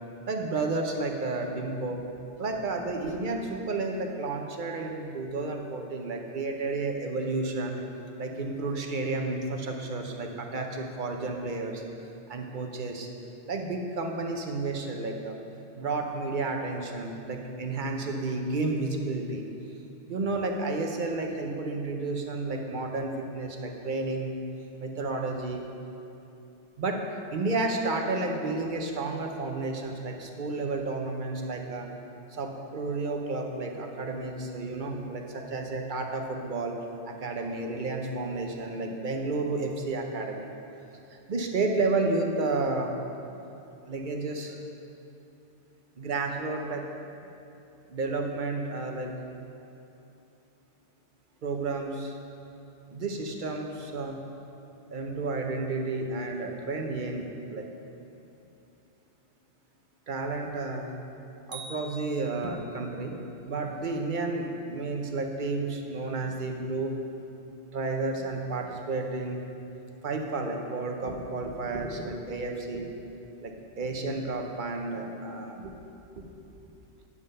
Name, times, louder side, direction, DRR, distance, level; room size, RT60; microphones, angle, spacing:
voice 1, 0.3-2.0 2.4-7.8 8.2-11.8 12.3-13.1 13.5-15.3 15.7-19.5 20.1-24.3 24.8-25.7 26.8-31.9 32.3-36.8 37.0-40.5 41.1-42.9 43.9-44.6 46.0-46.9 47.9-49.1 51.4-52.2 52.9-54.2 54.9-57.7 60.1-60.9 61.5-63.2 63.5-67.0 67.7-69.4 70.0-72.9 73.4-75.7 76.2-76.3, right 3 dB, 50° right, 2 dB, 0.9 m, -31 dB
sound 1, 61.5-62.9, right 2 dB, 30° right, 0.6 m, -45 dB
9.6 x 5.5 x 5.4 m, 2.8 s
omnidirectional pair, 1.1 m